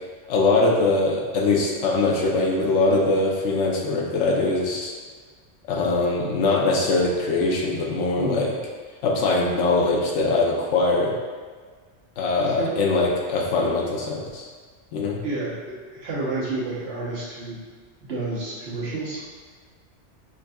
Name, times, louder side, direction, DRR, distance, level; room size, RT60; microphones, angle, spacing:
voice 1, 0.3-4.9 5.7-8.5 9.0-11.1 12.2-14.5 14.9-15.2, left 3 dB, 85° left, -1 dB, 1.0 m, -22 dB
voice 2, 12.4-12.7 15.2-17.6 18.0-19.2, right 3 dB, 65° right, -7 dB, 1.2 m, -30 dB
5.2 x 2.6 x 2.2 m, 1.5 s
omnidirectional pair, 1.2 m